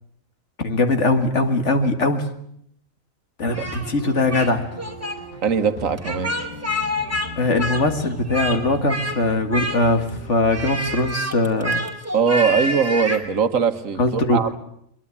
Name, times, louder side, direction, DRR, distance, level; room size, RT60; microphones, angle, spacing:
voice 1, 0.6-2.3 3.4-4.7 7.4-11.9 14.0-14.4, left 2 dB, 60° left, 7 dB, 2.3 m, -21 dB
sound 1, 3.5-11.6, equal, 85° left, 8.4 m, -38 dB
Speech, 3.5-4.5 4.8-5.2 6.0-7.3 7.6-8.6 8.9-9.2 9.5-10.1 10.5-13.2, equal, 10° right, 2.8 m, -27 dB
voice 2, 5.4-6.3 12.1-14.6, right 6 dB, 70° right, 10 dB, 1.6 m, -21 dB
23.0 x 23.0 x 8.6 m, 0.70 s
omnidirectional pair, 1.4 m